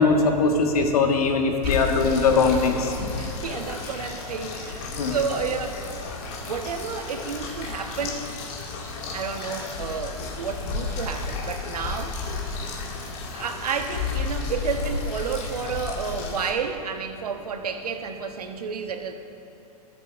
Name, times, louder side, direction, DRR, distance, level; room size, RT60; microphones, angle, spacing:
voice 1, 0.0-2.9 5.0-5.1, left 4 dB, 70° left, 3 dB, 1.4 m, -21 dB
sound 1, 1.6-16.5, left 4 dB, 45° left, 2.0 m, -32 dB
voice 2, 1.6-2.2 3.2-5.8 6.2-8.2 9.1-12.1 13.3-19.1, right 6 dB, 75° right, 6 dB, 1.1 m, -31 dB
15.0 x 11.5 x 2.4 m, 3.0 s
hypercardioid pair, 115°, 20 cm